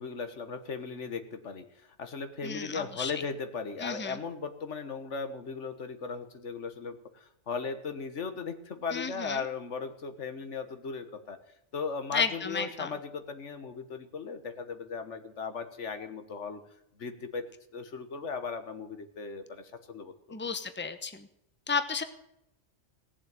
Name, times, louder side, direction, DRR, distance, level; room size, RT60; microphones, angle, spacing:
voice 1, 0.0-11.4 11.7-16.6 17.0-17.5 17.7-20.4, left 5 dB, 80° left, 8 dB, 1.7 m, -37 dB
voice 2, 2.4-3.1 3.8-4.2 8.9-9.4 12.1-12.9 20.3-21.3 21.7-22.0, left 5 dB, 10° left, 9 dB, 0.9 m, -32 dB
17.5 x 7.3 x 8.9 m, 0.79 s
omnidirectional pair, 1.2 m